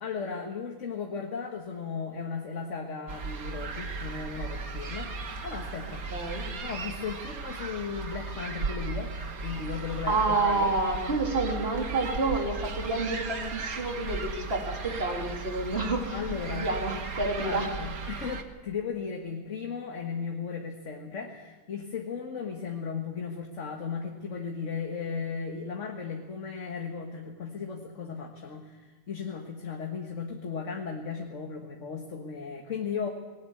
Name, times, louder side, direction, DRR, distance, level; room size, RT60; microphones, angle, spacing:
voice 1, 0.0-6.1 6.6-9.1 9.4-10.7 16.1-16.7 17.4-33.1, left 5 dB, 50° left, 2 dB, 1.8 m, -36 dB
sound 1, 3.1-18.4, right 4 dB, 65° right, 1.9 m, -36 dB
voice 2, 6.1-6.4 10.1-16.1 16.5-17.7, right 3 dB, 40° right, 0 dB, 3.7 m, -29 dB
19.5 x 18.5 x 8.5 m, 1.3 s
omnidirectional pair, 1.7 m